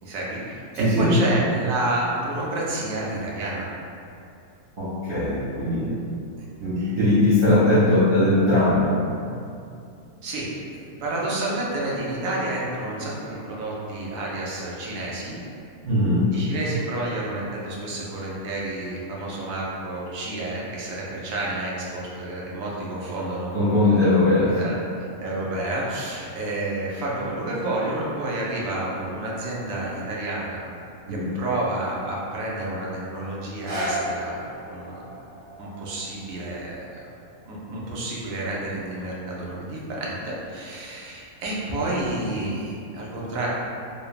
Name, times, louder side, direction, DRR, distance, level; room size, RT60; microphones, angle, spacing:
voice 1, 0.0-3.7 6.4-6.5 6.8-6.9 10.2-15.4 16.3-24.7 25.2-30.6 31.1-34.4 34.6-35.0 35.6-37.0 37.5-43.5, right 2 dB, 75° right, -5 dB, 1.0 m, -30 dB
voice 2, 0.7-1.2 4.8-6.0 6.6-8.9 15.8-16.4 23.5-24.6 31.1-31.3, left 1 dB, 60° right, -11 dB, 0.6 m, -20 dB
sound 1, 33.6-39.5 40.1-40.2, equal, 40° right, 1.4 m, -36 dB
3.1 x 2.0 x 2.3 m, 2.5 s
omnidirectional pair, 1.5 m